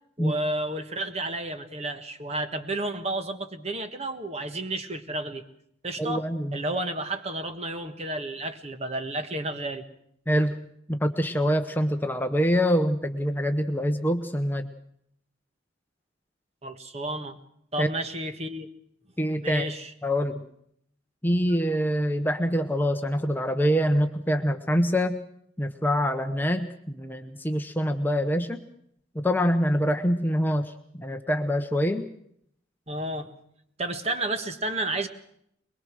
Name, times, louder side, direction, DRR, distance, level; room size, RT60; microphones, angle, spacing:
voice 1, 0.2-5.4 5.8-6.2 6.5-9.8 16.6-17.4 17.7-18.7 19.4-19.9 32.9-33.3 33.8-35.1, right 1 dB, 30° right, 8 dB, 1.5 m, -31 dB
voice 2, 6.0-6.6 10.3-14.7 17.8-17.9 19.2-19.7 20.0-20.4 21.2-25.2 25.6-28.6 29.1-32.1, equal, 10° left, 6 dB, 0.9 m, -25 dB
22.5 x 22.0 x 6.3 m, 0.70 s
head